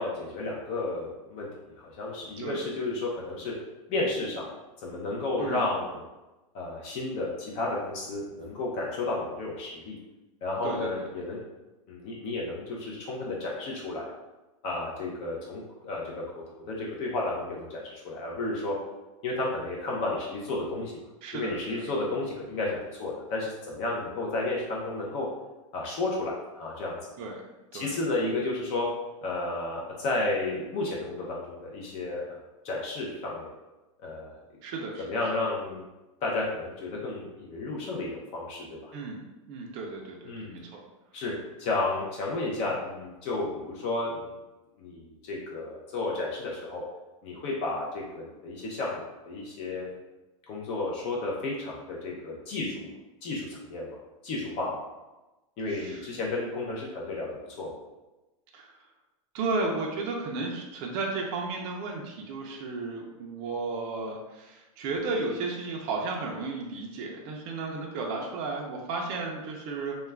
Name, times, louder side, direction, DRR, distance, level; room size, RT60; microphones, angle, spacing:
voice 1, 0.0-1.5 1.8-3.5 3.9-4.5 4.8-6.0 6.5-10.0 10.4-11.4 11.9-14.1 14.6-18.7 19.2-21.0 21.3-25.3 25.7-27.0 27.7-28.9 29.2-33.5 34.0-34.4 35.0-35.8 36.2-38.9 40.2-40.5 41.1-41.3 41.6-44.3 44.8-46.8 47.2-49.9 50.5-52.9 53.2-54.0 54.2-54.8 55.6-57.7, left 2 dB, 40° left, -3 dB, 0.5 m, -32 dB
voice 2, 10.6-11.0 21.2-21.8 27.2-27.4 27.7-27.9 34.6-35.0 38.9-39.2 39.5-40.8 55.7-56.0 58.5-58.7 59.3-70.0, right 3 dB, 40° right, -1 dB, 0.4 m, -33 dB
2.3 x 2.2 x 3.2 m, 1.1 s
supercardioid pair, 155°, 17 cm